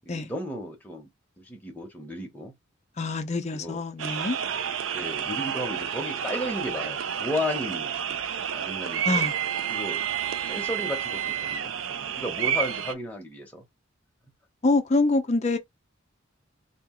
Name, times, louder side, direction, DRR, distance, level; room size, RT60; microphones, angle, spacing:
voice 1, 0.1-1.1 1.4-2.5 3.5-3.8 4.9-7.9 8.5-9.3 9.7-10.1 10.4-13.6, left 1 dB, 10° left, 0.8 m, -34 dB
voice 2, 3.0-4.4 9.0-9.3 14.6-15.6, left 3 dB, 35° left, 0.5 m, -25 dB
sound 1, 4.0-12.9, right 9 dB, 75° right, 0.4 m, -30 dB
2.8 x 2.5 x 3.7 m
head